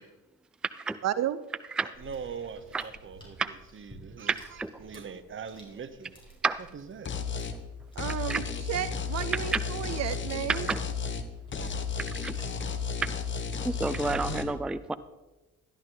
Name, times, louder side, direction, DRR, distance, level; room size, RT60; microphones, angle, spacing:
voice 1, 1.0-1.4 8.0-10.7, right 11 dB, 60° right, 0.5 m, -32 dB
voice 2, 1.8-6.1 6.7-7.1 10.0-10.2 11.5-11.7 12.7-12.8, right 6 dB, 40° right, 1.1 m, -42 dB
sound 1, 1.9-14.4, equal, 15° left, 5.2 m, -54 dB
voice 3, 4.3-4.7 6.4-6.6 8.3-8.4 9.5-9.6 10.5-10.8 12.2-12.3 13.6-14.9, right 4 dB, 5° right, 0.4 m, -29 dB
sound 2, 7.1-7.6 8.0-11.3 11.5-14.4, left 5 dB, 40° left, 1.2 m, -33 dB
13.5 x 11.5 x 4.0 m
cardioid pair, 90°, 30 cm